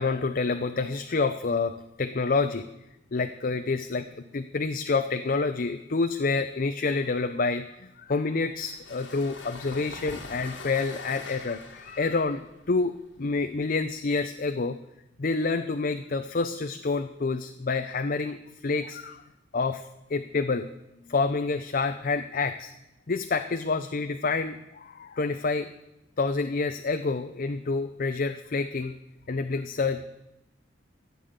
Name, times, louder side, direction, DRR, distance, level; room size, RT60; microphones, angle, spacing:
voice 1, 0.0-2.7 3.1-14.8 15.2-19.2 19.5-20.7 21.1-22.7 23.1-25.7 26.2-28.9 29.3-30.0, left 4 dB, 50° left, 8 dB, 0.6 m, -28 dB
sound 1, 8.6-14.1, left 3 dB, 85° left, 2.0 m, -44 dB
13.5 x 8.3 x 8.0 m, 0.89 s
head